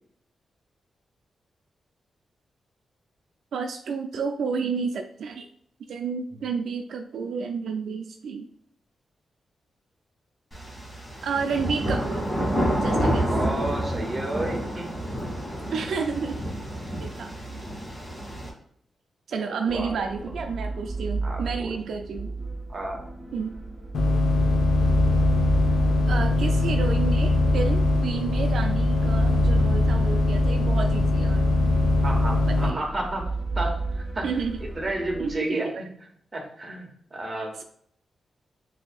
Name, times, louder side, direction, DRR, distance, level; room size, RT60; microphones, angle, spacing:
voice 1, 3.5-5.5 5.9-8.5 11.2-12.3 12.8-13.3 15.7-16.4 17.0-17.3 19.3-22.3 23.3-23.5 26.1-31.4 32.5-32.8 34.2-34.6 35.2-35.7, right 5 dB, 80° right, 5 dB, 0.4 m, -31 dB
sound 1, 10.5-18.5, equal, 15° left, 1.5 m, -29 dB
voice 2, 13.2-15.0 19.7-19.9 21.2-21.7 22.7-23.0 32.0-33.2 33.5-33.7 34.1-34.3 34.8-35.9 36.3-37.6, right 1 dB, 25° right, -1 dB, 1.1 m, -31 dB
sound 2, 19.7-35.4, right 3 dB, 5° right, 1.8 m, -34 dB
sound 3, 23.9-32.7, left 2 dB, 50° left, 0.5 m, -21 dB
6.4 x 2.8 x 2.3 m, 0.66 s
wide cardioid pair, 125°, 0 cm